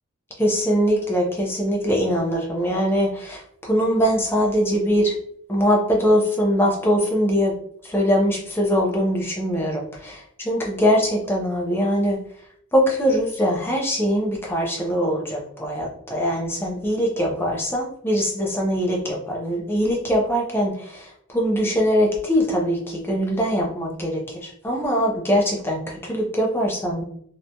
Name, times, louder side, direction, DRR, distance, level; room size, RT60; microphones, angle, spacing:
voice 1, 0.4-5.2 5.5-7.6 7.8-12.2 12.7-27.0, equal, 10° left, -2 dB, 0.5 m, -22 dB
2.9 x 2.2 x 2.6 m, 0.66 s
head